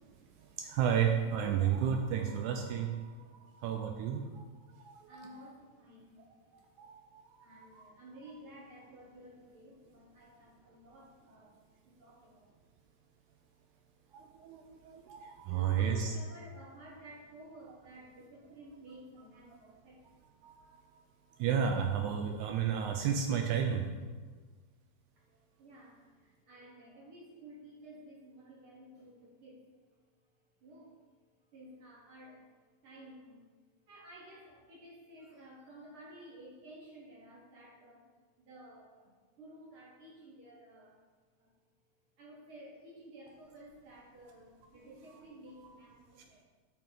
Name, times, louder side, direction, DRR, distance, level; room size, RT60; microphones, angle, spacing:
voice 1, 0.0-0.6 3.0-3.6 3.9-12.8 13.5-14.3 15.1-15.2 15.4-20.2 21.3-21.4 25.1-29.8 30.2-30.3 30.6-33.4 33.9-38.1 38.4-41.0 41.4-41.5 42.2-46.4, right 1 dB, 60° right, -4 dB, 1.5 m, -54 dB
voice 2, 0.6-4.4 4.7-5.5 6.5-7.8 14.1-16.1 20.4-20.8 21.4-23.9, right 8 dB, 80° right, 4 dB, 1.8 m, -33 dB
7.8 x 7.5 x 3.9 m, 1.4 s
omnidirectional pair, 3.9 m